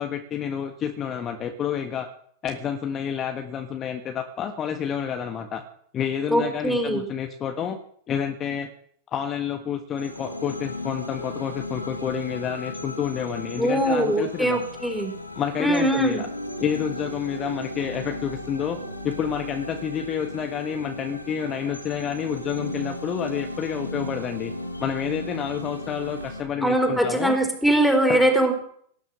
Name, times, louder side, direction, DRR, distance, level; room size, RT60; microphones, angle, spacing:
voice 1, 0.0-2.1 2.4-5.6 5.9-7.8 8.1-8.7 9.1-14.6 15.3-16.3 16.6-18.8 19.0-24.5 24.8-27.4 28.1-28.2, left 8 dB, 30° left, 5 dB, 1.5 m, -29 dB
voice 2, 6.3-7.0 13.6-15.1 15.6-16.2 26.6-28.5, right 1 dB, ahead, 3 dB, 4.2 m, -21 dB
sound 1, 10.0-26.4, left 1 dB, 85° left, 2.3 m, -35 dB
18.5 x 10.5 x 6.3 m, 0.62 s
figure-of-eight pair, 90°, 0 cm